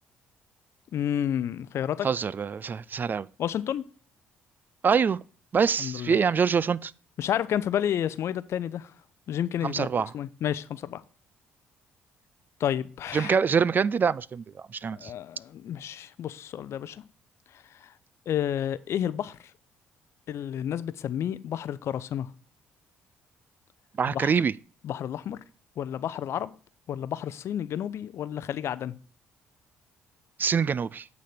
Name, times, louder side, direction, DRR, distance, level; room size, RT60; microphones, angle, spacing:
voice 1, 0.9-2.1 3.4-3.8 5.8-6.2 7.2-8.9 9.3-11.0 12.6-13.4 14.9-17.0 17.8-17.9 18.3-19.4 20.3-22.3 24.1-24.3 24.8-25.4 25.8-26.5 26.9-29.0, left 10 dB, 55° left, 0.5 m, -30 dB
voice 2, 2.0-3.3 4.8-5.2 5.5-6.9 9.6-10.1 13.1-15.1 24.0-24.5 30.4-31.1, right 6 dB, 35° right, 0.3 m, -25 dB
9.2 x 4.2 x 6.6 m
figure-of-eight pair, 45°, 6 cm